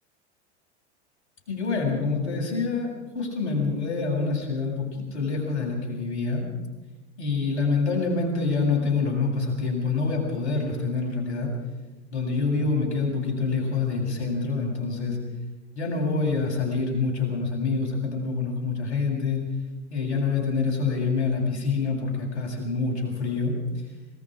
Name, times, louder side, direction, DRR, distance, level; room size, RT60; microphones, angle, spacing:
voice 1, 1.5-6.4 7.2-11.5 12.1-15.2 15.7-19.4 19.9-23.5, left 4 dB, 75° left, 1 dB, 7.7 m, -26 dB
26.5 x 20.5 x 5.1 m, 1.1 s
hypercardioid pair, 95°, 35 cm